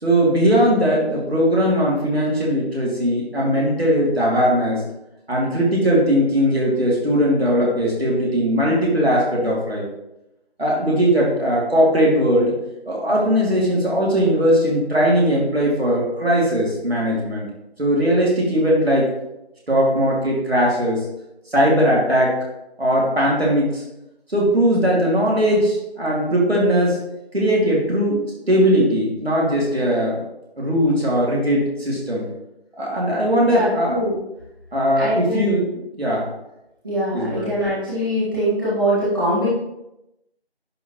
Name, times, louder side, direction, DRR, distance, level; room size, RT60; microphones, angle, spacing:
voice 1, 0.0-4.8 5.3-9.8 10.6-12.5 12.9-17.4 17.8-19.1 19.7-21.0 21.5-22.3 22.8-23.8 24.3-27.0 27.3-30.2 30.6-32.2 32.8-34.0 34.7-35.7 35.9-36.3 37.1-37.5, equal, 70° right, -4 dB, 2.7 m, -19 dB
voice 2, 33.4-34.2 35.0-35.5 36.8-39.5, equal, 20° right, -12 dB, 2.2 m, -23 dB
10.5 x 4.3 x 3.0 m, 0.90 s
figure-of-eight pair, 170°, 32 cm